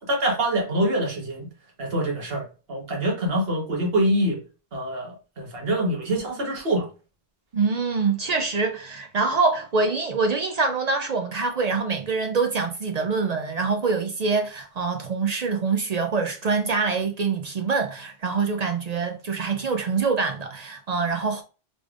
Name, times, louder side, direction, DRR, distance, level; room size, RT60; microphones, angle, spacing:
voice 1, 0.1-1.5 1.8-4.4 4.7-6.9, right 1 dB, 70° right, 1.5 m, -25 dB
voice 2, 7.5-21.4, right 4 dB, 55° right, 0.5 m, -25 dB
3.9 x 3.3 x 2.4 m
omnidirectional pair, 1.0 m